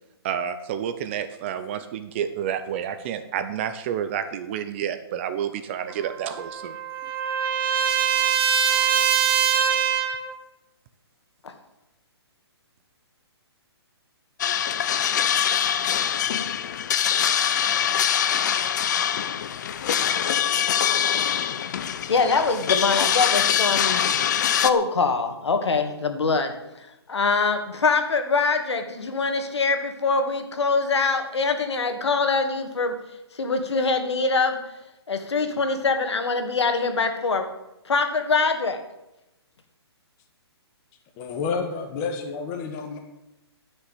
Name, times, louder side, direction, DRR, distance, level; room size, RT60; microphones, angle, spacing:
voice 1, 0.2-6.7, right 9 dB, 25° right, 10 dB, 0.7 m, -29 dB
Trumpet, 5.9-10.3, right 8 dB, 55° right, 2.0 m, -23 dB
sound 1, 14.4-24.7, left 9 dB, 40° left, 0.8 m, -23 dB
voice 2, 22.1-24.0 24.6-26.5 27.1-32.9 33.3-34.6 35.1-37.5 37.8-38.8, left 4 dB, 80° left, 7 dB, 2.3 m, -23 dB
voice 3, 41.2-43.0, left 5 dB, 20° left, 3 dB, 1.4 m, -29 dB
11.0 x 6.9 x 9.2 m, 0.93 s
hypercardioid pair, 160°, 14 cm